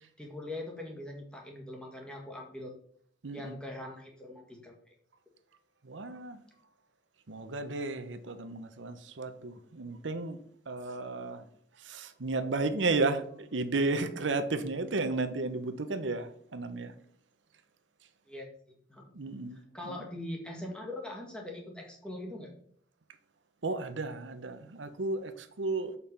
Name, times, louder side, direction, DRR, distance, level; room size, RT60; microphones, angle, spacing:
voice 1, 0.2-2.7 3.3-4.9 18.3-18.5 18.9-19.0 19.7-22.5, left 1 dB, 5° left, 1.7 m, -42 dB
voice 2, 3.2-3.6 5.8-6.4 7.3-10.4 10.7-11.4 11.8-16.9 19.1-20.0 23.6-26.0, right 3 dB, 85° right, 0.8 m, -33 dB
6.7 x 5.6 x 5.5 m
head